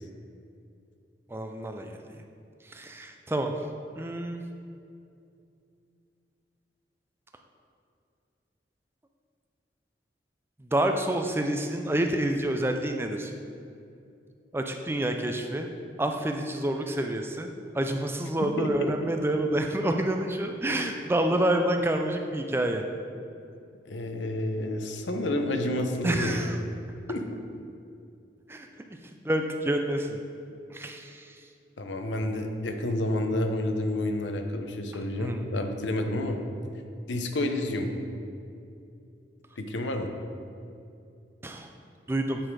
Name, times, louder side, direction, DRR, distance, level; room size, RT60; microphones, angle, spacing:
voice 1, 1.3-2.2 2.6-3.5 4.0-4.4 10.6-13.3 14.5-15.7 16.0-17.5 17.7-22.8 26.0-26.6 28.5-28.7 29.2-30.2 30.7-31.4 35.2-35.5 41.4-41.7 42.1-42.4, right 1 dB, 15° right, 4 dB, 0.4 m, -28 dB
voice 2, 18.6-18.9 23.8-26.5 27.1-27.2 31.8-36.4 37.1-37.9 39.6-40.1, left 1 dB, 90° left, 5 dB, 0.7 m, -29 dB
8.9 x 4.2 x 4.6 m, 2.5 s
head